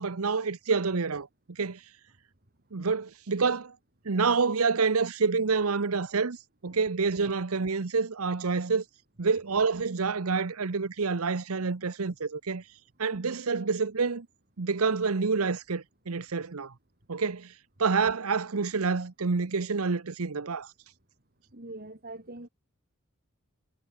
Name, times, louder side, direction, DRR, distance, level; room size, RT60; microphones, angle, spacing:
voice 1, 0.0-1.8 2.7-3.7 4.0-6.4 6.6-8.8 9.2-12.6 13.0-14.3 14.6-16.7 17.1-17.5 17.8-20.7, right 4 dB, 85° right, 0.9 m, -28 dB
voice 2, 21.5-22.5, right 2 dB, 45° right, 3.4 m, -43 dB
head